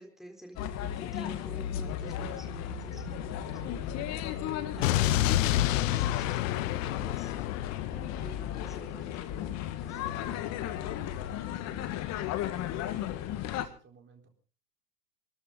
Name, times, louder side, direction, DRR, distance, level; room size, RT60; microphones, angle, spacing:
voice 1, 0.0-7.3 7.9-9.6 9.8-10.9 11.5-12.0, equal, ahead, 4 dB, 3.9 m, -49 dB
sound 1, 0.6-13.7, left 11 dB, 35° left, 1.7 m, -35 dB
sound 2, 1.6-7.6, right 7 dB, 55° right, 3.8 m, -52 dB
Explosion, 4.8-8.9, left 14 dB, 55° left, 0.9 m, -29 dB
voice 2, 11.5-12.2 12.5-14.3, right 5 dB, 20° right, 3 dB, 4.1 m, -57 dB
23.0 x 14.0 x 3.9 m, 0.38 s
hypercardioid pair, 120°, 48 cm